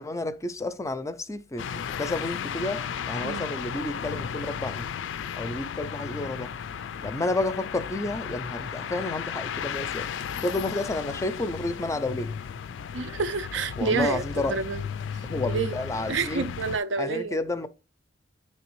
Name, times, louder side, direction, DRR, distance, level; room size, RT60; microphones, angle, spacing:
voice 1, 0.0-4.9 5.4-6.5 7.0-10.1 10.4-12.4 13.8-14.6 15.2-16.5 17.0-17.7, left 2 dB, 15° left, 0.4 m, -31 dB
sound 1, 1.6-16.8, left 7 dB, 90° left, 0.3 m, -34 dB
voice 2, 12.9-14.8 15.5-15.8 16.1-17.4, right 4 dB, 80° right, 0.5 m, -28 dB
9.3 x 3.3 x 3.0 m
head